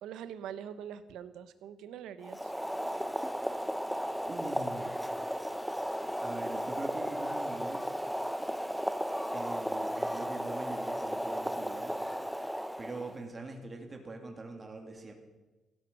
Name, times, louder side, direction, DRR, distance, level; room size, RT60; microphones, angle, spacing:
voice 1, 0.0-2.5, right 9 dB, 85° right, 13 dB, 1.1 m, -43 dB
Boiling, 2.2-13.2, equal, ahead, 0.7 m, -35 dB
voice 2, 4.2-4.9 6.2-8.0 9.3-12.0 12.8-15.1, right 2 dB, 30° right, 3 dB, 2.7 m, -43 dB
16.0 x 13.0 x 6.3 m, 1.1 s
cardioid pair, 90°, 0 cm